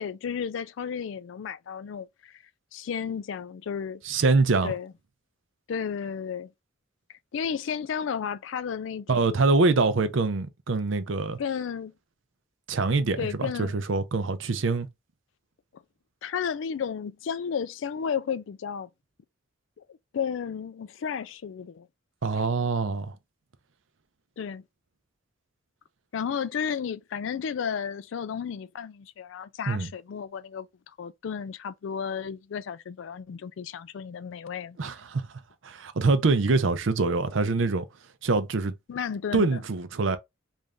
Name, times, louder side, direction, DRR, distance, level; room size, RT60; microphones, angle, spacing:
voice 1, 0.0-2.4 2.7-4.0 4.6-4.9 5.7-6.5 7.3-9.3 11.4-11.9 13.2-13.8 16.2-18.9 19.8-21.9 24.4-24.6 26.1-30.7 31.0-34.8 38.9-39.6, left 7 dB, 70° left, 0.3 m, -33 dB
voice 2, 4.0-4.7 9.1-11.4 12.7-14.9 22.2-23.1 29.7-29.9 34.8-35.2 35.6-37.9 38.2-38.7 39.3-40.2, right 3 dB, 70° right, 0.6 m, -24 dB
3.2 x 2.6 x 3.5 m
head